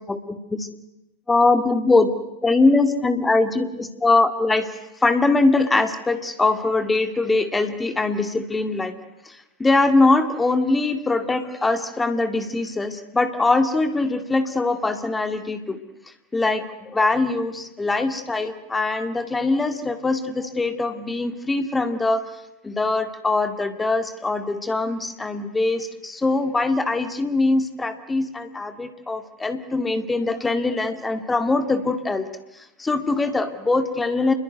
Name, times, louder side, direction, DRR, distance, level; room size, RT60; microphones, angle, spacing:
voice 1, 0.1-0.7 1.3-2.1 2.4-4.7 5.0-8.9 9.3-9.4 9.6-15.8 16.3-22.3 22.6-32.3 32.8-34.3, left 3 dB, 10° left, 9 dB, 2.1 m, -22 dB
28.0 x 22.5 x 9.3 m, 0.93 s
figure-of-eight pair, 90°, 0 cm